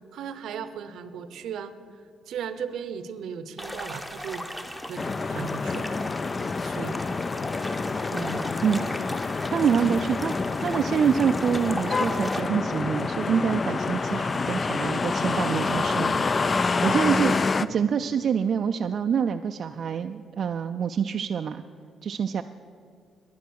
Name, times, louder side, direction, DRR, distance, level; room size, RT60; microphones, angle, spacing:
voice 1, 0.1-1.7 2.3-4.4 4.9-6.0 6.6-7.0 8.1-8.6 9.5-10.0, right 6 dB, 75° right, 12 dB, 0.7 m, -36 dB
sound 1, 3.6-12.4, equal, 10° left, 1.0 m, -38 dB
sound 2, 5.0-17.7, left 4 dB, 35° left, 0.3 m, -27 dB
voice 2, 9.5-10.3 10.6-16.4 16.8-17.3 17.7-21.6 22.0-22.4, right 7 dB, 55° right, 6 dB, 0.3 m, -26 dB
10.0 x 9.5 x 6.4 m, 2.2 s
cardioid pair, 90°, 0 cm